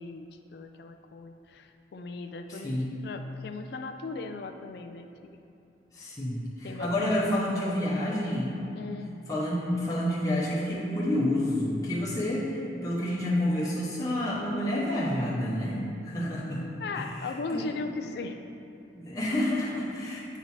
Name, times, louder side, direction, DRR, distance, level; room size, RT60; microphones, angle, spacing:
voice 1, 0.0-5.4 6.6-7.1 7.6-7.9 8.7-9.1 16.8-18.4, left 3 dB, 60° left, 5 dB, 0.4 m, -38 dB
voice 2, 2.5-2.9 5.9-8.5 9.3-16.6 16.9-17.0 17.5-17.6 18.9-20.4, left 1 dB, 20° left, -7 dB, 0.9 m, -29 dB
8.1 x 3.0 x 5.5 m, 2.7 s
head